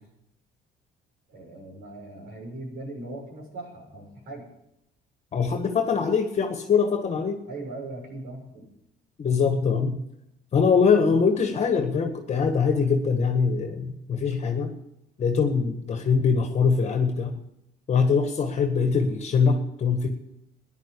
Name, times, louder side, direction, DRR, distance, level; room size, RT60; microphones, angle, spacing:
voice 1, 1.3-4.5 7.5-8.6, right 2 dB, 75° right, 1 dB, 6.8 m, -39 dB
voice 2, 5.3-7.4 9.2-10.0 10.5-14.7 15.2-17.3 17.9-20.1, left 5 dB, 40° left, 5 dB, 1.7 m, -23 dB
14.5 x 11.0 x 8.6 m, 0.82 s
cardioid pair, 110°, 17 cm